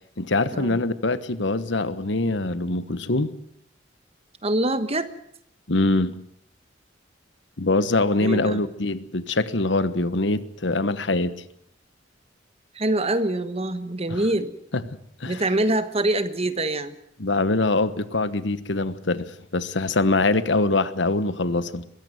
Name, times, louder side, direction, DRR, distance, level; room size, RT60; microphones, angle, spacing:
voice 1, 0.2-3.3 5.7-6.2 7.6-11.3 14.1-14.2 14.7-14.8 15.2-15.4 17.2-21.8, left 2 dB, 65° left, 14 dB, 1.2 m, -23 dB
voice 2, 4.4-5.1 8.2-8.6 12.7-14.5 15.3-16.9, right 1 dB, 30° right, 11 dB, 1.4 m, -24 dB
22.5 x 16.0 x 9.3 m, 0.72 s
head